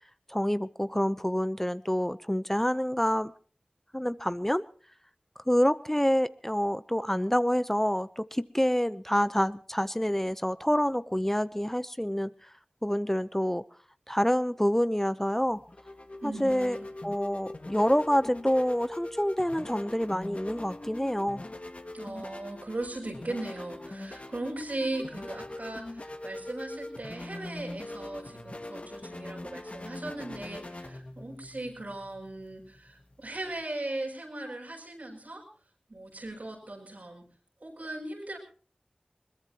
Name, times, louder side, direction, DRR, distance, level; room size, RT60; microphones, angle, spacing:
voice 1, 0.3-3.3 3.9-4.6 5.4-12.5 12.8-13.6 14.1-15.6 16.2-16.8 17.0-21.4, equal, 10° left, 14 dB, 0.7 m, -27 dB
sound 1, 15.4-33.6, left 1 dB, 55° left, 1.9 m, -42 dB
voice 2, 16.2-16.9 21.9-35.5 35.9-37.3 37.6-38.4, right 2 dB, 80° right, 0 dB, 6.9 m, -38 dB
21.5 x 21.0 x 2.9 m, 0.40 s
wide cardioid pair, 45°, 3 cm